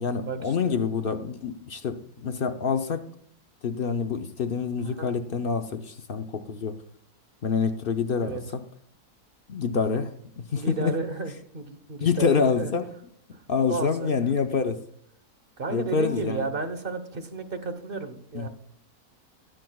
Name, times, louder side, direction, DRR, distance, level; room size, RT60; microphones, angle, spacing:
voice 1, 0.0-3.1 3.6-6.8 7.4-8.6 9.5-11.0 12.0-12.9 13.5-14.8 15.7-16.5 18.3-18.5, left 5 dB, 60° left, 7 dB, 0.6 m, -27 dB
voice 2, 4.8-5.1 8.2-8.4 10.6-12.7 13.3-13.4 13.7-14.1 15.6-18.5, right 4 dB, 40° right, 9 dB, 1.1 m, -33 dB
20.0 x 7.8 x 2.3 m, 0.62 s
omnidirectional pair, 1.6 m